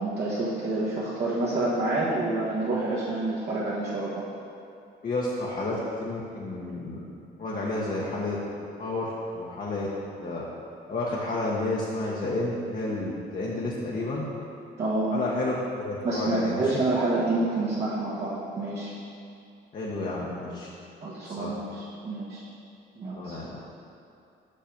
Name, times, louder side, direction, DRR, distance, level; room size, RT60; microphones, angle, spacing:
voice 1, 0.0-4.3 14.8-15.2 16.0-18.9 21.0-22.4 23.0-23.4, right 2 dB, 55° right, -8 dB, 1.3 m, -28 dB
voice 2, 5.0-7.0 7.4-8.4 8.8-9.9 10.2-10.4 10.9-14.3 15.1-16.7 19.7-20.7 21.2-21.5 23.2-23.5, left 2 dB, 45° left, -5 dB, 1.0 m, -31 dB
5.8 x 5.4 x 5.1 m, 2.6 s
cardioid pair, 90°, 20 cm